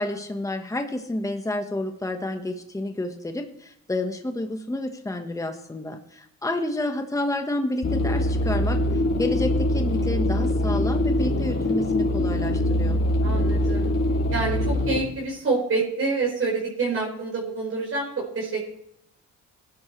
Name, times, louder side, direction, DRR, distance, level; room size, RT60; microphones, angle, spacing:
voice 1, 0.0-8.8 9.2-13.0, left 1 dB, 10° left, 5 dB, 1.4 m, -30 dB
sound 1, 7.8-15.0, left 1 dB, 45° left, 4.0 m, -23 dB
voice 2, 13.2-13.9 14.3-18.7, right 3 dB, 50° right, -5 dB, 5.2 m, -27 dB
18.5 x 11.0 x 3.3 m, 0.74 s
cardioid pair, 90°, 30 cm